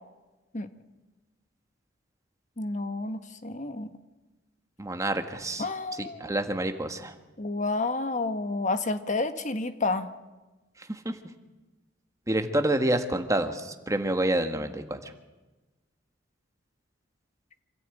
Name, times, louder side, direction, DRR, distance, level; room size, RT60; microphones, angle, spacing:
voice 1, 2.6-3.9 5.6-6.3 7.4-10.1, left 3 dB, 40° left, 9 dB, 1.3 m, -30 dB
voice 2, 4.8-5.7 5.9-7.1 10.8-11.2 12.3-15.1, right 1 dB, 15° right, 6 dB, 1.6 m, -28 dB
26.5 x 13.5 x 9.2 m, 1.2 s
head